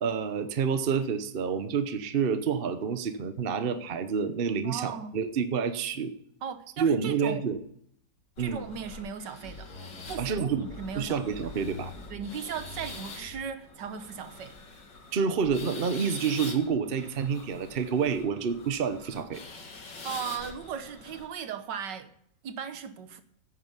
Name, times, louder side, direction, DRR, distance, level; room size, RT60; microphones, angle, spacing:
voice 1, 0.0-6.1 6.8-7.6 8.4-8.6 10.2-10.7 10.9-11.9 15.1-19.4, right 6 dB, 45° right, 0.8 m, -28 dB
voice 2, 4.6-5.1 6.4-7.4 8.4-9.7 10.1-11.4 12.1-14.6 20.0-22.1 22.4-23.2, right 7 dB, 75° right, 1.7 m, -37 dB
Mouth Breating, 8.4-21.3, left 3 dB, 85° left, 2.5 m, -46 dB
sound 1, 9.4-13.4 15.4-15.5, left 2 dB, 60° left, 4.1 m, -44 dB
9.8 x 9.3 x 8.1 m
omnidirectional pair, 1.9 m